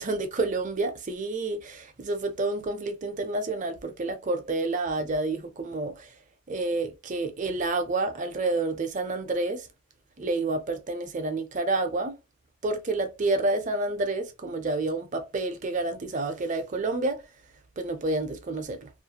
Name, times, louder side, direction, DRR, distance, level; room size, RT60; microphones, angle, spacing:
voice 1, 0.0-6.1 6.5-9.7 10.2-12.1 12.6-17.2 17.8-18.9, right 2 dB, 35° right, 0.5 m, -29 dB
2.4 x 2.1 x 2.8 m
head